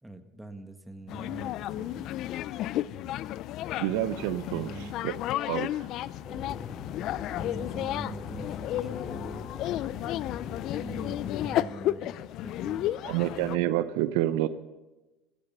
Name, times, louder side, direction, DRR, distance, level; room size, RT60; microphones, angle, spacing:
voice 1, 0.0-2.1 4.5-5.0 6.2-6.7 7.3-9.6 10.7-13.2, right 2 dB, 5° right, 7 dB, 1.7 m, -44 dB
sound 1, 1.1-13.6, left 13 dB, 60° left, 0.5 m, -33 dB
voice 2, 3.8-4.7 5.0-5.1 5.5-5.9 13.0-14.5, right 14 dB, 80° right, 13 dB, 0.8 m, -28 dB
sound 2, 6.2-11.6, left 6 dB, 35° left, 1.3 m, -41 dB
16.5 x 14.5 x 5.5 m, 1.1 s
supercardioid pair, 95°, 0 cm